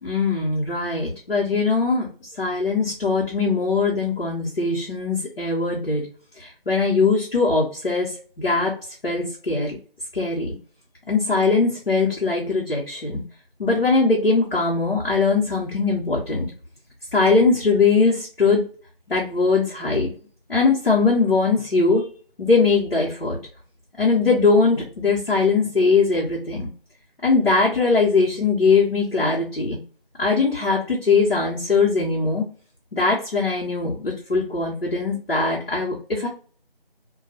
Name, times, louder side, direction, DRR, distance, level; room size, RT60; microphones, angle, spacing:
voice 1, 0.0-6.1 6.4-8.7 9.0-9.8 10.1-10.5 11.1-13.2 13.6-16.5 17.1-18.6 19.1-20.1 20.5-22.1 22.4-23.4 24.0-26.7 27.2-29.8 30.2-32.5 32.9-36.3, left 4 dB, 80° left, -5 dB, 0.9 m, -21 dB
2.3 x 2.2 x 2.7 m, 0.41 s
figure-of-eight pair, 175°, 30 cm